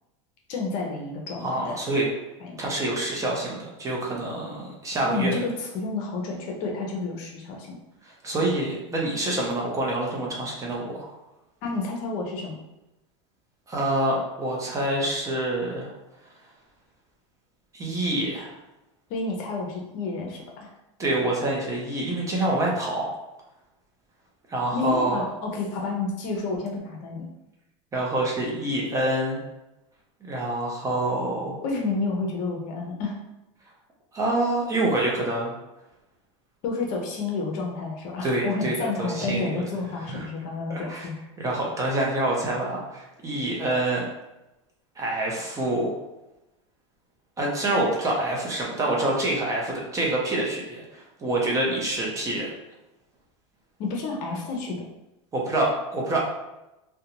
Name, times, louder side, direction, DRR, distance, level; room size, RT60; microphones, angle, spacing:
voice 1, 0.5-1.8 2.4-2.6 5.0-7.8 11.6-12.6 19.1-20.7 24.7-27.3 31.6-33.2 36.6-41.2 53.8-54.9, left 3 dB, 50° left, 0 dB, 0.7 m, -30 dB
voice 2, 1.4-2.0 2.6-5.4 8.0-11.1 13.7-15.9 17.7-18.5 21.0-23.1 24.5-25.2 27.9-29.4 30.2-31.6 34.1-35.5 38.2-39.6 40.0-40.3 40.7-41.1 41.4-44.0 45.0-46.0 47.4-52.5 55.3-56.2, right 1 dB, 20° right, -3 dB, 0.6 m, -26 dB
2.5 x 2.2 x 2.9 m, 0.94 s
supercardioid pair, 125°, 16 cm